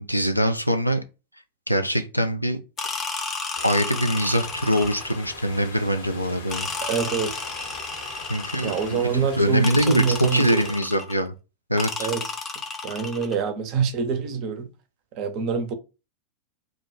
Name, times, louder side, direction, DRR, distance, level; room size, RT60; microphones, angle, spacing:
voice 1, 0.1-1.0 1.7-2.6 3.6-6.7 8.3-9.0 9.4-11.3 11.7-12.1, equal, 90° left, 0.3 m, -23 dB
sound 1, 2.8-5.3 6.5-9.1 9.6-11.2 11.8-13.4, left 4 dB, 20° left, 0.4 m, -32 dB
sound 2, 3.5-10.8, left 3 dB, 65° left, 0.8 m, -41 dB
voice 2, 6.8-7.4 8.6-10.7 12.0-12.3 12.8-14.7 15.1-15.7, right 6 dB, 40° right, 0.5 m, -25 dB
2.4 x 2.1 x 3.8 m
figure-of-eight pair, 90°, 0 cm